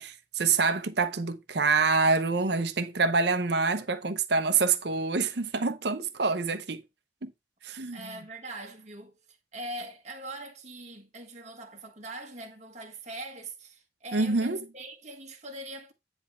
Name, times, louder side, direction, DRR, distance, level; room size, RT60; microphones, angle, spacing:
voice 1, 0.0-6.8 7.2-7.3 7.6-8.1 14.1-14.6, right 4 dB, 60° right, 0.8 m, -26 dB
voice 2, 7.9-15.9, right 1 dB, 35° right, 1.5 m, -42 dB
9.8 x 3.5 x 4.3 m
head